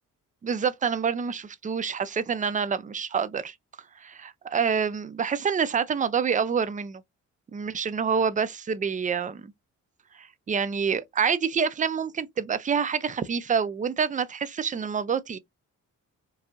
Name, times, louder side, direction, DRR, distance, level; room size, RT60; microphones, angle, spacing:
voice 1, 0.4-3.5 4.0-7.0 7.5-9.5 10.2-15.4, right 6 dB, 25° right, 0.4 m, -27 dB
4.6 x 2.7 x 2.5 m
cardioid pair, 130°, 32 cm